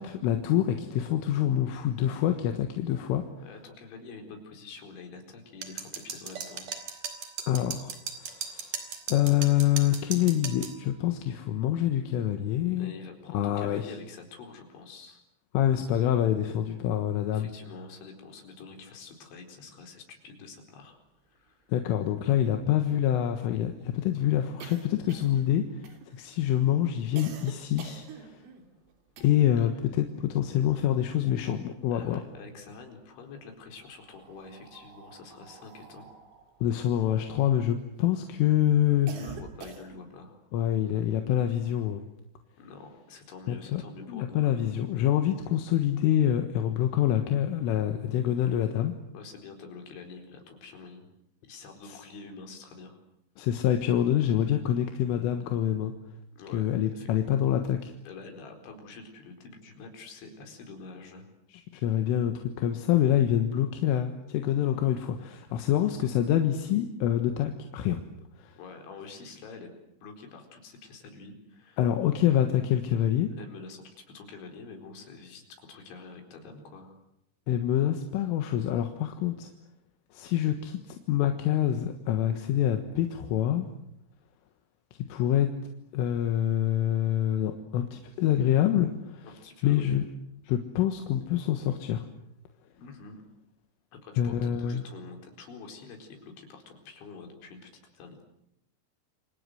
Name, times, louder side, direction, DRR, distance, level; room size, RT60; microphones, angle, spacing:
voice 1, 0.0-3.2 7.5-8.8 9.1-12.9 13.3-14.0 15.5-17.5 21.7-25.8 26.1-28.3 29.2-32.2 36.6-39.1 40.5-42.0 43.5-43.8 44.1-48.9 51.9-52.0 53.4-55.9 56.5-57.9 61.5-68.0 68.4-68.5 71.8-73.3 77.5-79.5 80.1-83.7 85.1-85.5 85.9-89.3 89.6-90.0 90.5-92.0 94.2-94.8, left 11 dB, 85° left, 6 dB, 4.0 m, -26 dB
voice 2, 3.4-6.7 12.8-15.2 17.3-21.0 21.3-21.7 29.6-29.7 31.9-36.1 39.1-40.4 42.6-44.6 49.1-51.1 51.4-53.0 56.3-56.6 56.9-57.1 58.0-61.3 68.6-69.7 70.0-71.9 73.3-77.0 89.2-90.0 92.8-93.2 93.9-98.2, left 4 dB, 70° left, 4 dB, 6.7 m, -46 dB
sound 1, 5.6-10.8, right 6 dB, 50° right, 3.9 m, -37 dB
sound 2, 21.5-21.6 21.8-21.9 22.2-29.7 30.0-31.5 31.9-32.8 33.6-38.1 38.5-40.2, right 6 dB, 90° right, 5.6 m, -49 dB
29.0 x 25.5 x 7.9 m, 0.78 s
omnidirectional pair, 5.6 m